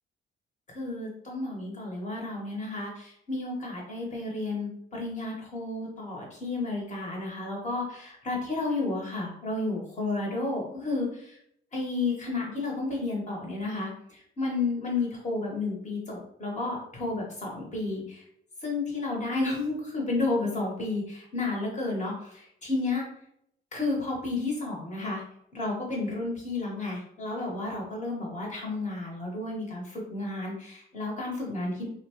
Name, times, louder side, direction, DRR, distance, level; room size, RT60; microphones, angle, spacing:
voice 1, 0.7-11.4 11.7-18.2 18.6-23.0 23.7-25.2 25.5-31.9, left 3 dB, 35° left, -2 dB, 1.2 m, -32 dB
2.8 x 2.2 x 3.0 m, 0.72 s
cardioid pair, 90°, 20 cm